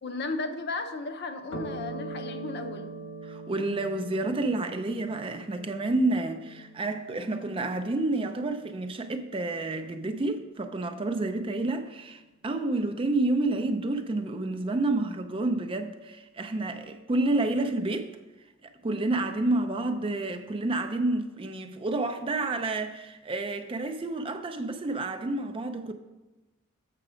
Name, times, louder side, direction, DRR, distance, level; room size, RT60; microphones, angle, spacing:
voice 1, 0.0-2.9, left 3 dB, 50° left, 0.6 m, -34 dB
sound 1, 1.5-10.4, right 2 dB, 80° left, 1.5 m, -43 dB
voice 2, 3.2-18.1 18.6-25.9, right 2 dB, 25° right, 0.4 m, -29 dB
7.6 x 5.9 x 4.9 m
head